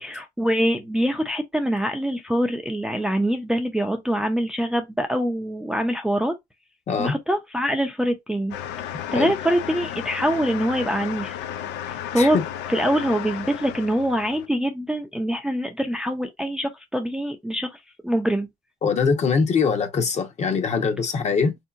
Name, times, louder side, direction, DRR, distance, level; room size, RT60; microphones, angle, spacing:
voice 1, 0.0-6.3 7.0-8.6 9.1-11.4 11.9-12.4 12.7-17.7 18.0-18.5, equal, 5° right, 0.4 m, -24 dB
sound 1, 8.5-14.5, left 10 dB, 85° left, 0.4 m, -33 dB
voice 2, 18.8-21.5, left 5 dB, 40° left, 0.9 m, -22 dB
3.5 x 2.8 x 2.4 m
cardioid pair, 110°, 17 cm